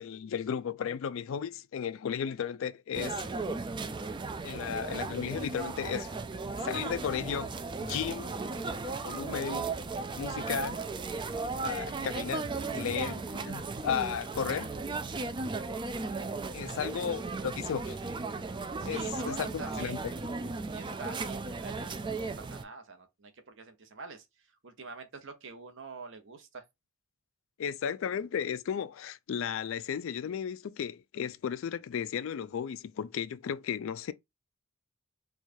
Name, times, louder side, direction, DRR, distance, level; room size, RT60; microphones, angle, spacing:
voice 1, 0.0-3.2 4.4-6.1 6.6-7.5 7.8-8.3 9.0-9.7 10.2-10.8 11.6-14.8 16.5-18.0 18.8-20.0 27.6-34.1, left 8 dB, 60° left, 0.3 m, -34 dB
sound 1, 2.9-22.6, right 3 dB, 20° right, 0.3 m, -36 dB
voice 2, 16.7-17.0 18.8-20.0 20.7-24.3 24.6-26.6, right 4 dB, 60° right, 0.9 m, -46 dB
4.5 x 2.4 x 2.6 m
head